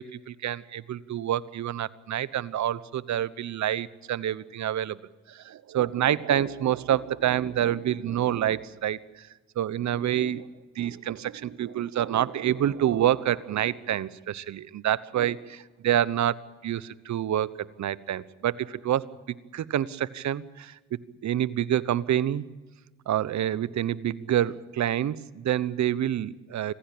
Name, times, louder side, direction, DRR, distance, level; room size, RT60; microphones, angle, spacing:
voice 1, 0.0-5.0 5.3-9.3 9.6-10.5 10.7-16.3 16.6-17.5 17.8-20.8 21.2-22.4 23.1-26.7, right 11 dB, 60° right, 18 dB, 1.0 m, -27 dB
26.0 x 16.0 x 8.6 m, 1.3 s
supercardioid pair, 65°, 32 cm